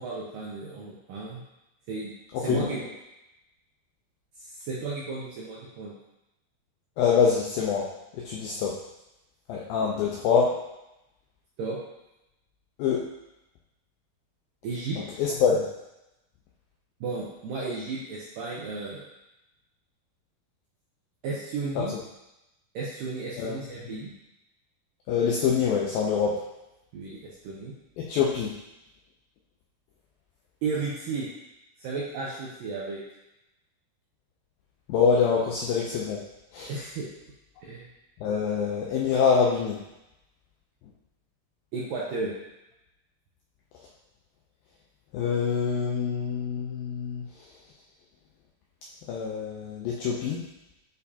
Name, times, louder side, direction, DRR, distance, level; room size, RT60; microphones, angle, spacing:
voice 1, 0.0-1.4 1.9-2.9 4.5-5.9 11.6-11.8 14.6-15.0 17.0-19.0 21.2-21.9 22.7-24.1 26.9-27.7 30.6-31.3 31.8-33.0 36.7-37.1 37.6-37.9 41.7-42.3, right 4 dB, 80° right, -5 dB, 2.0 m, -34 dB
voice 2, 2.3-2.7 7.0-7.9 8.1-8.8 9.5-10.6 12.8-13.1 15.2-15.7 21.8-21.9 23.4-23.6 23.9-24.0 25.1-26.4 28.0-28.6 34.9-36.2 36.5-36.7 38.2-39.8 45.1-47.3 49.1-50.4, left 6 dB, 85° left, -3 dB, 2.0 m, -25 dB
8.0 x 4.3 x 2.8 m, 0.92 s
omnidirectional pair, 4.8 m